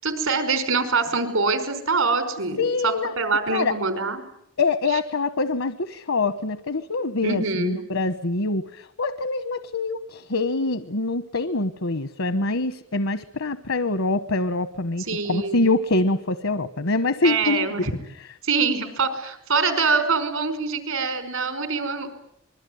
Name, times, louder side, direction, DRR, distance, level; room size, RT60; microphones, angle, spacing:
voice 1, 0.0-4.2 4.9-5.0 7.2-7.8 15.1-15.6 17.2-17.9 18.4-22.1, right 4 dB, 85° right, 10 dB, 5.1 m, -24 dB
voice 2, 2.6-3.1 3.5-3.7 4.6-17.7, left 3 dB, 75° left, 13 dB, 1.1 m, -25 dB
26.5 x 22.0 x 9.4 m, 0.76 s
head